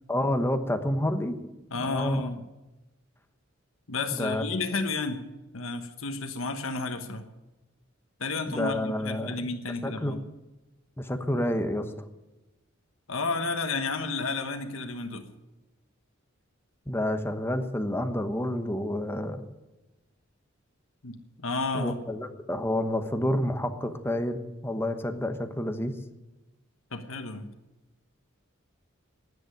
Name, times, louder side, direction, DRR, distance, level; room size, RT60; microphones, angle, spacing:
voice 1, 0.1-1.4 1.8-2.3 4.1-4.4 8.5-9.3 9.8-10.2 11.0-11.9 16.9-19.4 21.7-26.0, left 1 dB, 10° left, 8 dB, 1.1 m, -29 dB
voice 2, 1.7-2.5 3.9-5.2 5.5-7.2 8.2-10.2 13.1-15.2 21.0-22.0 26.9-27.5, left 3 dB, 85° left, 6 dB, 1.3 m, -32 dB
10.5 x 9.9 x 10.0 m, 1.0 s
head